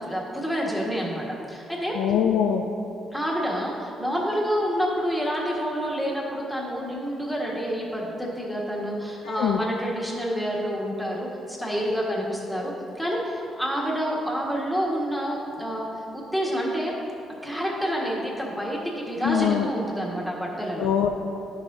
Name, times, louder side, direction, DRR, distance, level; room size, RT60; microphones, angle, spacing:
voice 1, 0.0-2.0 3.1-15.9 16.1-16.9 17.4-20.9, equal, ahead, -4 dB, 1.5 m, -28 dB
voice 2, 2.0-2.6 9.3-9.6 19.2-19.7 20.8-21.1, left 9 dB, 85° left, 3 dB, 0.3 m, -23 dB
10.5 x 6.3 x 2.7 m, 2.8 s
cardioid pair, 90°, 0 cm